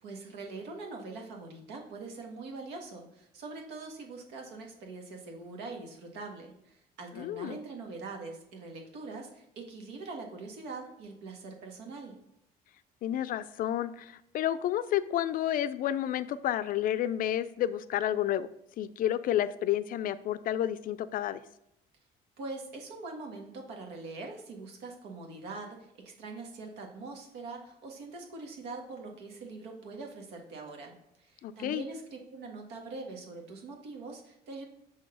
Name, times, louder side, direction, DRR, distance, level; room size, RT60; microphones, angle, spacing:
voice 1, 0.0-12.2 22.4-34.7, right 3 dB, 90° right, 2 dB, 1.4 m, -43 dB
voice 2, 7.1-7.6 13.0-18.5 18.8-21.4 31.4-31.9, left 11 dB, 55° left, 15 dB, 0.4 m, -30 dB
6.2 x 3.9 x 5.0 m, 0.79 s
cardioid pair, 110°, 17 cm